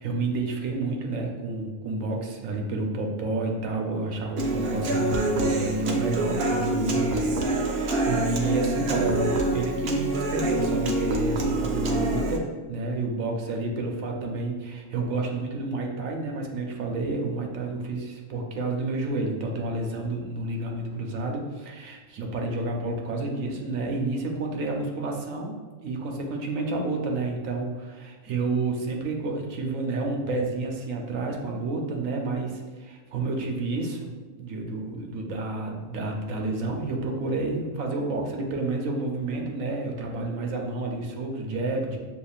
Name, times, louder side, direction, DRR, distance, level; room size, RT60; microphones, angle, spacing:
voice 1, 0.0-25.5 25.8-34.1 34.4-42.0, right 2 dB, 90° right, 1 dB, 1.1 m, -30 dB
Human voice / Acoustic guitar, 4.4-12.4, right 2 dB, 60° right, 0.7 m, -26 dB
6.8 x 2.8 x 2.4 m, 1.4 s
omnidirectional pair, 1.3 m